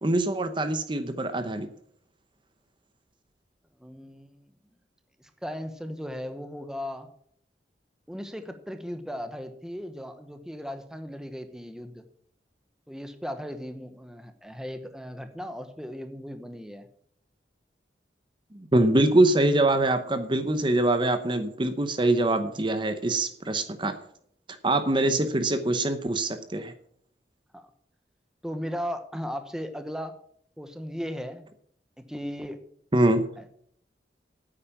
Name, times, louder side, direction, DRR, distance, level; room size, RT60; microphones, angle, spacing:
voice 1, 0.0-1.7 18.5-23.9 24.6-26.7 32.9-33.2, right 2 dB, 30° right, 9 dB, 0.9 m, -24 dB
voice 2, 3.8-4.5 5.2-7.1 8.1-12.1 12.9-16.9 27.5-27.7 28.4-30.2 30.6-31.5 32.0-32.6 33.4-33.5, equal, 5° right, 8 dB, 1.0 m, -37 dB
9.3 x 9.0 x 7.1 m, 0.64 s
head